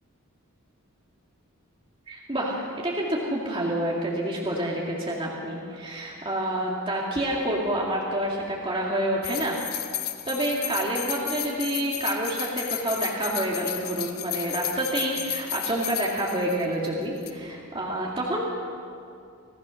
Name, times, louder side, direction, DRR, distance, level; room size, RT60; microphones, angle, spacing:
voice 1, 2.1-9.6 10.3-18.4, right 1 dB, 25° right, -3 dB, 2.1 m, -28 dB
sound 1, 9.2-16.9 17.2-17.3, left 12 dB, 80° left, 1.4 m, -33 dB
25.5 x 16.0 x 6.3 m, 2.4 s
head